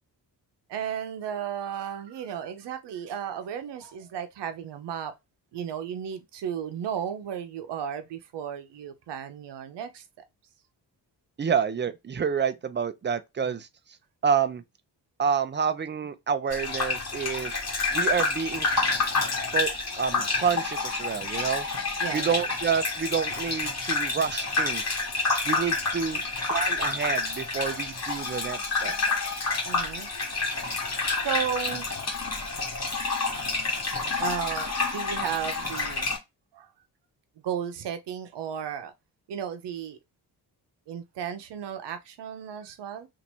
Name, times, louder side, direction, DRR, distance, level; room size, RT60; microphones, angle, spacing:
voice 1, 0.7-5.1 5.5-10.0 22.0-22.4 26.1-26.2 29.6-30.1 31.2-31.9 33.4-33.6 34.2-36.1 36.5-36.7 37.4-38.9 39.3-40.0 40.9-43.1, right 8 dB, 75° right, 0.8 m, -34 dB
voice 2, 11.4-13.7 14.2-14.6 15.2-17.6 17.9-18.7 19.5-21.7 22.1-25.0 25.4-26.2 26.5-29.0, right 6 dB, 25° right, 0.5 m, -28 dB
Gurgling / Bathtub (filling or washing), 16.5-36.2, left 3 dB, 35° left, 1.2 m, -29 dB
2.9 x 2.6 x 4.3 m
cardioid pair, 70°, 42 cm